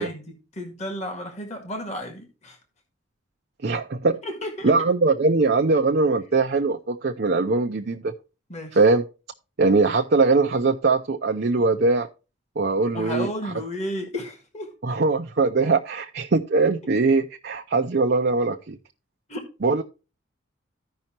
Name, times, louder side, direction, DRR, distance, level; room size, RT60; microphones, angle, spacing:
voice 1, 0.0-2.6 4.2-4.9 8.5-8.8 12.9-14.7 19.3-19.4, equal, 35° left, 1.6 m, -33 dB
voice 2, 3.6-4.2 4.6-8.1 8.7-9.0 9.6-12.1 12.6-13.3 14.8-18.8 19.6-19.8, right 3 dB, 50° right, 0.5 m, -21 dB
15.0 x 5.5 x 2.9 m
head